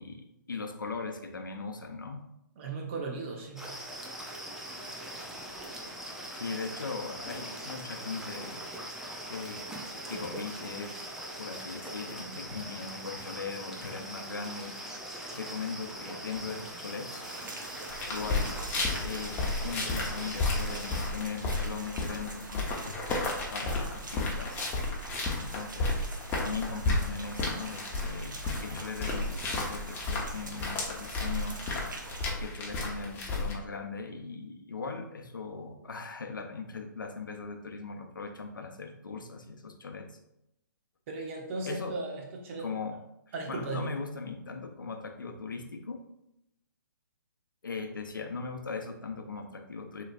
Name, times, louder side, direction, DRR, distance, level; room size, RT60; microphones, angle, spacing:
voice 1, 0.0-2.2 6.4-8.6 9.3-9.7 10.1-11.0 11.3-15.0 15.3-17.5 18.1-18.6 19.0-23.0 23.5-24.7 25.4-31.6 32.0-40.2 41.6-41.9 42.6-43.0 43.5-46.0 47.6-50.0, left 4 dB, 80° left, 4 dB, 0.8 m, -39 dB
voice 2, 2.6-3.8 41.1-42.7 43.3-44.0, right 3 dB, 40° right, 0 dB, 1.0 m, -37 dB
sound 1, 3.6-21.1, right 1 dB, 5° right, 0.5 m, -41 dB
Rain, 17.2-32.3, right 3 dB, 70° right, 0.8 m, -46 dB
sound 2, 17.9-33.5, left 2 dB, 15° left, 0.9 m, -33 dB
6.5 x 3.1 x 2.5 m, 0.83 s
figure-of-eight pair, 130°, 11 cm